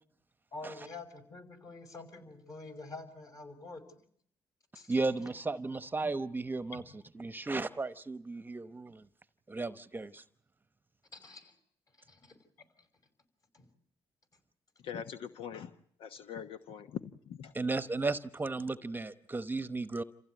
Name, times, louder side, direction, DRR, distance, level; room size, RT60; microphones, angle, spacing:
voice 1, 0.5-4.0 4.7-5.0 6.7-6.8 11.1-11.5 12.0-12.4 13.5-13.7, left 3 dB, 40° left, 5.6 m, -47 dB
voice 2, 4.9-6.8 7.1-9.0 9.5-10.2 17.5-20.0, right 3 dB, 20° right, 0.9 m, -34 dB
voice 3, 14.8-17.5, left 8 dB, 85° left, 1.1 m, -43 dB
28.0 x 15.5 x 9.2 m
cardioid pair, 90°, 9 cm